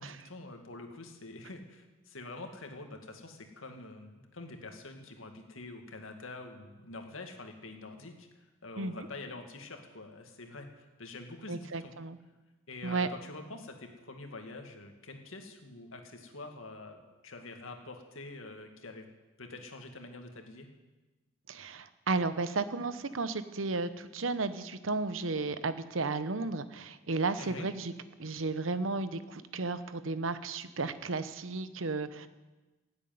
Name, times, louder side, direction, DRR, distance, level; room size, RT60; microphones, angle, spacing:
voice 1, 0.0-12.0 12.7-19.1 19.4-20.7 27.4-27.7, left 2 dB, 90° left, 5 dB, 2.1 m, -46 dB
voice 2, 8.8-9.1 11.5-12.2 12.8-13.1 21.5-27.9 28.2-32.3, right 3 dB, 80° right, 13 dB, 0.9 m, -33 dB
16.5 x 8.2 x 9.4 m, 1.2 s
head